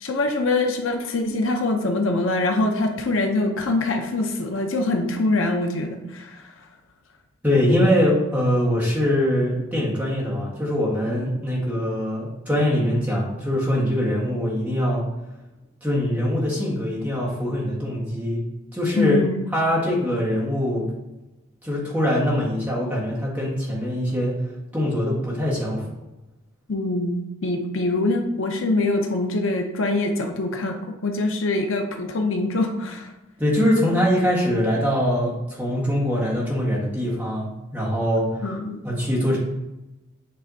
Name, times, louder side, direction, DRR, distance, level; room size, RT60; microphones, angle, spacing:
voice 1, 0.0-6.4 18.9-19.4 26.7-33.1 38.4-38.8, left 2 dB, 70° left, 4 dB, 0.7 m, -24 dB
voice 2, 7.4-15.1 15.8-18.4 18.7-19.2 19.5-20.9 21.6-24.4 24.7-25.9 33.4-38.5 38.8-39.4, equal, 10° right, -6 dB, 1.7 m, -23 dB
7.6 x 3.3 x 4.0 m, 0.98 s
head